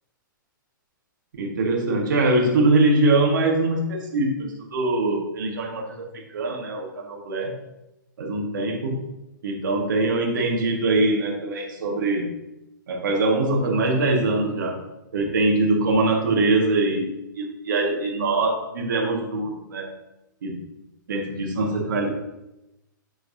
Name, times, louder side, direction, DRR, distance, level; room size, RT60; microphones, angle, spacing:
voice 1, 1.4-6.1 6.3-7.5 8.2-9.0 9.4-12.3 12.9-14.8 15.1-17.1 17.4-19.9 20.4-20.6 21.1-22.1, right 2 dB, 65° right, -1 dB, 2.0 m, -23 dB
13.5 x 4.5 x 2.9 m, 0.93 s
hypercardioid pair, 120°, 11 cm